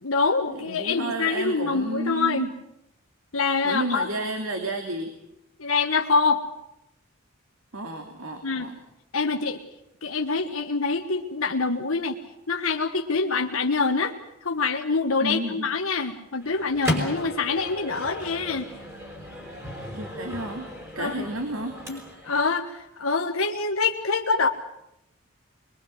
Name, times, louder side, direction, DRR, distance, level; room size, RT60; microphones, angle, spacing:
voice 1, 0.0-2.5 3.3-4.1 5.6-6.4 8.4-8.7 9.1-9.6 10.0-12.2 12.5-14.1 14.4-18.6 21.0-21.2 21.9-22.0 22.2-24.5, left 4 dB, 90° left, 3 dB, 1.5 m, -25 dB
voice 2, 0.5-2.5 3.6-5.1 7.7-8.8 15.2-15.7 19.9-21.8, right 1 dB, 85° right, 4 dB, 2.9 m, -31 dB
Microwave oven, 16.4-22.4, left 1 dB, 10° right, 5.4 m, -35 dB
23.0 x 23.0 x 7.9 m, 0.83 s
head